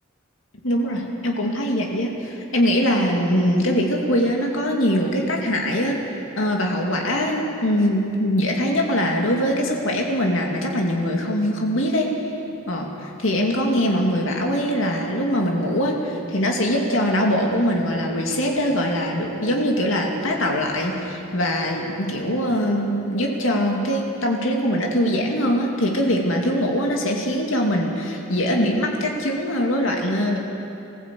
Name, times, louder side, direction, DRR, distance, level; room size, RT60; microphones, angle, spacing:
voice 1, 0.6-6.0 6.4-12.1 12.7-30.4, equal, 75° left, 0 dB, 2.4 m, -22 dB
21.0 x 16.0 x 8.5 m, 2.8 s
head